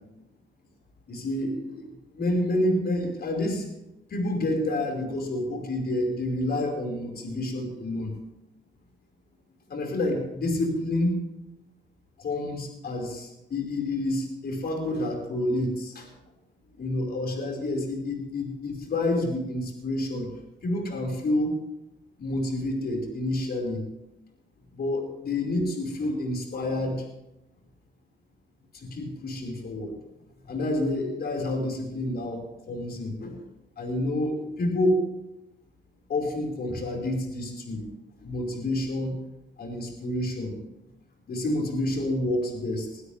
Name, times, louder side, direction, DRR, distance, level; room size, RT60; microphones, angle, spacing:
voice 1, 1.1-1.9 2.2-3.7 4.1-8.1 9.7-11.1 12.2-16.1 16.8-20.3 20.6-21.5 22.2-23.8 24.7-27.0 28.7-29.9 30.4-33.4 33.8-35.0 36.1-37.9 38.2-39.2 39.6-40.5 41.3-43.0, left 1 dB, 50° left, 1 dB, 5.2 m, -28 dB
21.0 x 12.5 x 3.5 m, 0.91 s
cardioid pair, 90°, 20 cm